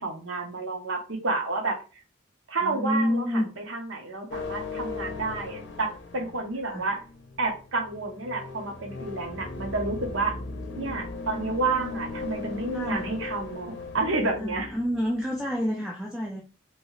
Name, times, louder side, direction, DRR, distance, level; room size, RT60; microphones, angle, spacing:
voice 1, 0.0-1.8 2.5-3.2 3.7-7.0 7.4-10.3 10.8-14.7, right 3 dB, 80° right, 4 dB, 0.9 m, -30 dB
voice 2, 2.6-3.5 6.6-6.9 12.7-13.1 14.4-16.4, equal, 5° right, -2 dB, 0.4 m, -28 dB
sound 1, 4.3-15.7, left 3 dB, 60° left, 0.6 m, -38 dB
3.1 x 2.7 x 3.1 m, 0.34 s
head